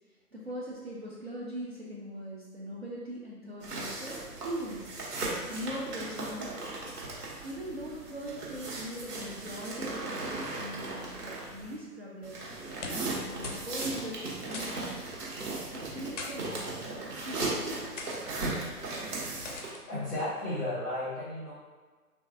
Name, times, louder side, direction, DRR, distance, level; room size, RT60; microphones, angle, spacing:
voice 1, 0.3-4.9 5.5-6.6 7.4-12.5 13.0-15.2 15.7-17.6, equal, 45° right, -6 dB, 0.5 m, -40 dB
sound 1, 3.6-11.8 12.2-19.7, right 2 dB, 85° right, 1.1 m, -37 dB
sound 2, 12.7-13.2 13.4-13.7 14.0-14.1 14.5-14.9 15.9-16.3 17.1-17.3 18.0-18.2 19.4-19.8, left 3 dB, 55° left, 0.5 m, -41 dB
voice 2, 19.9-21.5, left 1 dB, 15° left, -12 dB, 0.8 m, -33 dB
3.1 x 2.4 x 2.5 m, 1.3 s
figure-of-eight pair, 150°, 46 cm